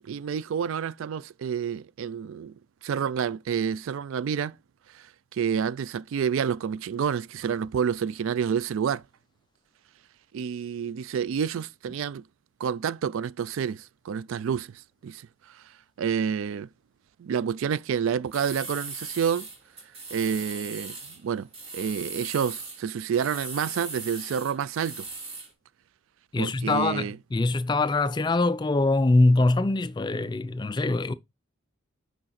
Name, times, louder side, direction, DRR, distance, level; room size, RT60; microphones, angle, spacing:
voice 1, 0.0-2.6 2.8-4.5 4.9-5.1 5.3-9.0 10.3-12.2 12.6-14.7 15.0-15.3 15.5-15.6 16.0-16.7 17.2-19.5 20.1-21.0 21.2-21.5 21.7-25.1 26.4-27.2, right 7 dB, 65° right, 0.3 m, -29 dB
sound 1, 18.3-21.2 21.5-22.8 23.1-25.5, right 3 dB, 30° right, 2.5 m, -39 dB
voice 2, 26.3-31.1, left 2 dB, 20° left, 0.3 m, -23 dB
6.3 x 4.8 x 4.2 m
head